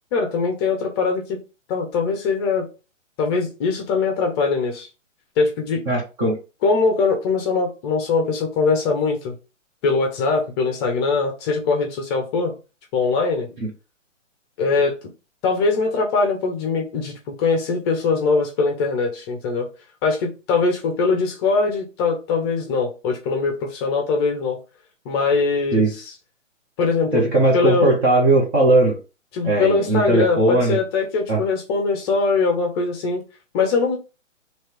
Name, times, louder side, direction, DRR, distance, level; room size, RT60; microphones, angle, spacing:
voice 1, 0.1-1.4 1.7-2.7 3.2-4.9 5.4-5.8 6.6-9.3 9.8-12.5 12.9-13.6 14.6-15.0 15.4-19.7 20.0-24.6 25.0-26.1 26.8-27.2 27.5-27.9 29.3-33.2 33.5-34.0, left 4 dB, 20° left, 0.7 m, -21 dB
voice 2, 5.9-6.4 25.7-25.9 27.1-29.0 29.4-30.8 31.3-31.4, right 2 dB, 15° right, 0.6 m, -18 dB
3.0 x 2.9 x 4.5 m
figure-of-eight pair, 135°, 38 cm